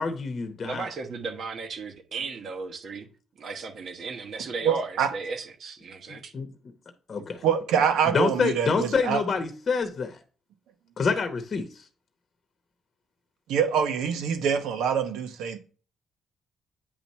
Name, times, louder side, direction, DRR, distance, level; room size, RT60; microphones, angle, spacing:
voice 1, 0.0-0.9 6.1-6.5 7.1-7.4 8.1-10.2 11.0-11.8, left 5 dB, 45° left, 0.9 m, -27 dB
voice 2, 0.6-3.1 3.4-6.3, right 4 dB, 55° right, 1.0 m, -35 dB
voice 3, 4.6-5.1 7.4-9.2 13.5-15.6, right 7 dB, 85° right, 1.0 m, -25 dB
8.9 x 3.0 x 5.4 m
cardioid pair, 90°, 0 cm